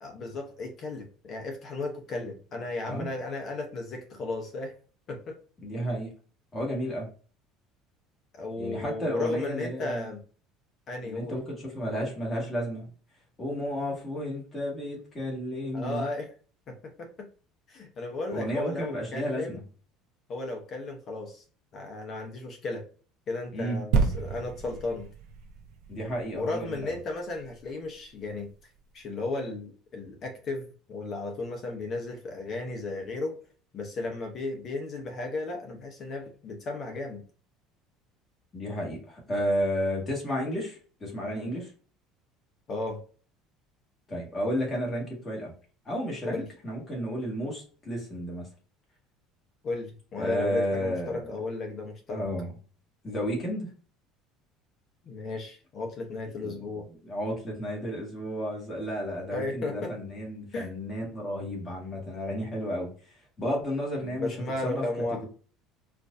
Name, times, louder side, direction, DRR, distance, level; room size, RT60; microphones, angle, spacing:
voice 1, 0.0-4.7 5.1-5.4 8.3-10.2 10.9-11.3 15.7-16.3 16.7-17.3 17.7-19.6 20.3-21.4 21.7-22.9 23.3-25.1 26.4-28.5 28.9-33.4 33.7-37.2 42.7-43.0 46.2-46.5 49.6-52.2 55.0-56.9 59.3-59.9 60.5-60.7 64.0-65.2, left 2 dB, 35° left, 3 dB, 0.8 m, -34 dB
voice 2, 5.6-6.1 6.5-7.1 8.6-10.1 11.0-12.9 13.4-16.0 18.3-19.6 23.5-23.8 25.9-27.0 38.5-41.7 44.1-45.5 45.9-48.5 50.2-51.3 52.1-52.5 53.0-53.7 56.4-56.6 57.0-64.4 64.6-64.8 65.1-65.3, equal, 20° left, -2 dB, 1.6 m, -32 dB
sound 1, 23.9-27.5 28.1-28.2, right 5 dB, 80° right, 0.8 m, -30 dB
4.4 x 2.6 x 2.6 m, 0.40 s
cardioid pair, 155°, 0 cm